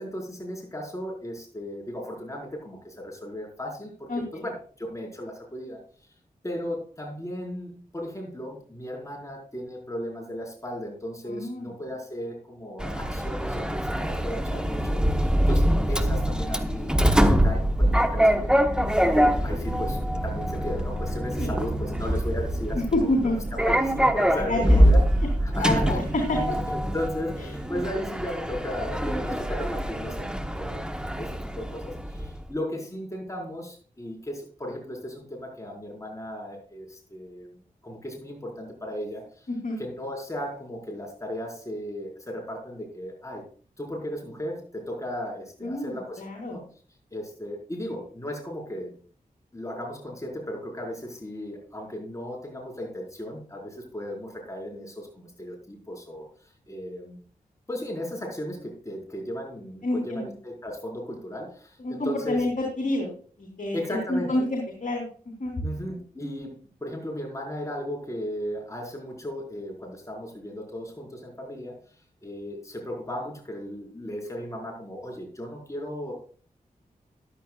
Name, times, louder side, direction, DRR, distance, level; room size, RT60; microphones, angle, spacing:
voice 1, 0.0-5.8 6.4-18.7 19.0-23.1 23.5-25.0 25.4-26.0 26.7-30.8 31.2-37.5 37.8-39.5 39.8-43.4 43.8-46.6 47.1-48.9 49.5-57.2 57.7-62.4 63.7-64.4 65.6-71.8 72.2-76.1, equal, 20° left, 0 dB, 5.1 m, -36 dB
voice 2, 4.1-4.4 11.3-11.7 21.4-21.5 22.7-23.4 24.3-24.8 25.6-26.0 26.5-26.6 39.5-39.8 45.6-46.6 59.8-60.3 61.8-63.1 63.4-65.0 65.4-65.6, left 1 dB, 60° left, 1 dB, 3.6 m, -28 dB
Sliding door, 12.8-32.4, equal, 5° right, 1.2 m, -24 dB
14.0 x 11.5 x 2.5 m, 0.43 s
wide cardioid pair, 65°, 15 cm